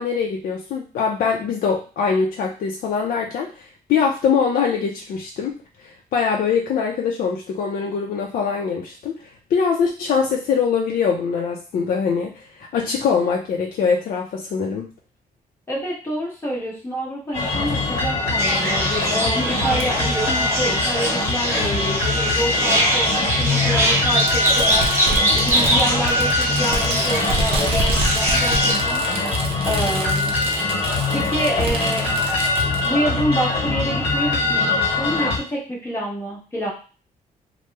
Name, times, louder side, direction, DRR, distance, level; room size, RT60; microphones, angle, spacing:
voice 1, 0.0-14.9, left 6 dB, 65° left, 0 dB, 0.4 m, -23 dB
voice 2, 15.7-29.0 29.6-30.3 31.1-32.2 32.8-36.7, equal, 15° left, -3 dB, 0.9 m, -27 dB
sound 1, 17.3-35.4, left 3 dB, 40° left, 1.2 m, -23 dB
sound 2, 18.4-28.7, right 1 dB, 15° right, 0.9 m, -22 dB
Fireworks, 19.8-19.9 21.0-21.1 22.4-22.5 24.1-32.9, right 2 dB, 40° right, 0.6 m, -28 dB
2.9 x 2.0 x 3.3 m, 0.36 s
wide cardioid pair, 170°, 15 cm